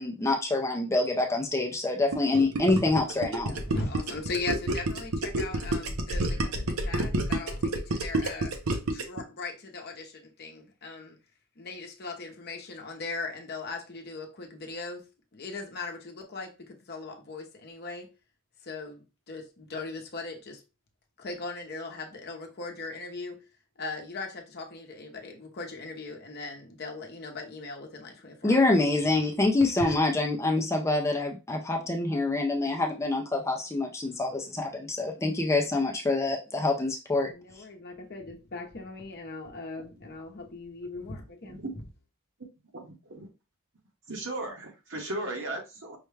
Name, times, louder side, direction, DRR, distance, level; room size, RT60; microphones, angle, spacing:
voice 1, 0.0-3.5 28.4-37.3 37.6-37.7, left 2 dB, 15° left, 0.5 m, -26 dB
Gurgling, 2.1-9.2, right 2 dB, 75° right, 0.8 m, -29 dB
voice 2, 3.5-8.5 8.9-11.2 11.6-18.1 18.6-20.6 21.2-23.4 23.8-28.6 29.8-29.9 37.3-41.6, left 3 dB, 50° left, 0.7 m, -39 dB
voice 3, 42.7-43.3 44.1-46.0, right 2 dB, 60° right, 1.2 m, -36 dB
5.5 x 2.2 x 3.3 m
head